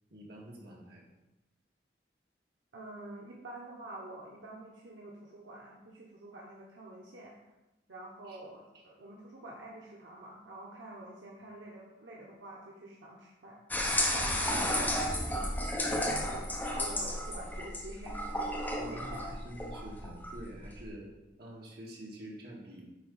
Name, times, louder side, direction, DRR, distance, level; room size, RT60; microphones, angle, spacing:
voice 1, 0.1-1.0 8.2-8.4 8.7-8.8 14.8-15.0 18.8-21.1 21.4-22.9, right 1 dB, 60° right, -3 dB, 1.9 m, -47 dB
voice 2, 2.7-7.4 7.9-13.6 14.1-19.3, right 1 dB, 80° right, -3 dB, 1.1 m, -47 dB
sound 1, 13.7-20.9, left 1 dB, 10° left, 0.9 m, -33 dB
9.1 x 3.6 x 5.5 m, 1.0 s
head